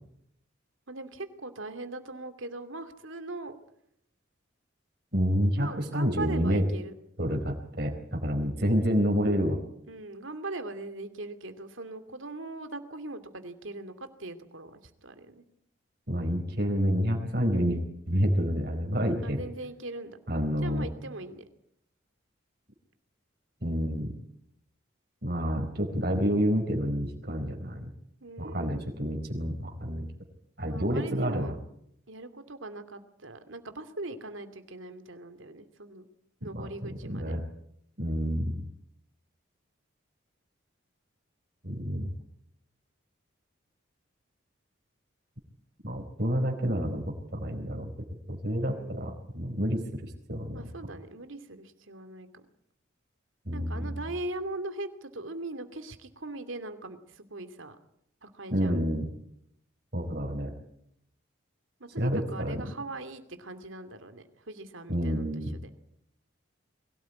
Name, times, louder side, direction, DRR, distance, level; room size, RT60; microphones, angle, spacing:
voice 1, 0.9-3.6 5.6-6.9 9.9-15.4 19.2-20.2 20.6-21.4 28.2-28.8 29.9-30.0 30.7-31.5 32.1-36.1 36.4-37.3 48.5-49.2 50.5-52.5 53.5-57.8 58.2-58.8 61.8-65.3 65.6-65.7, right 2 dB, 80° right, 8 dB, 2.6 m, -40 dB
voice 2, 5.1-6.7 7.2-9.6 16.1-17.8 18.1-19.4 20.3-20.9 23.6-24.1 25.2-27.9 28.4-30.1 30.6-31.6 36.5-36.7 37.1-37.4 38.0-38.7 41.6-42.1 45.8-47.9 48.3-50.7 53.5-54.0 58.5-59.1 59.9-60.5 62.0-62.7 64.9-65.6, equal, 50° right, 2 dB, 4.3 m, -28 dB
23.0 x 17.5 x 9.6 m, 0.76 s
head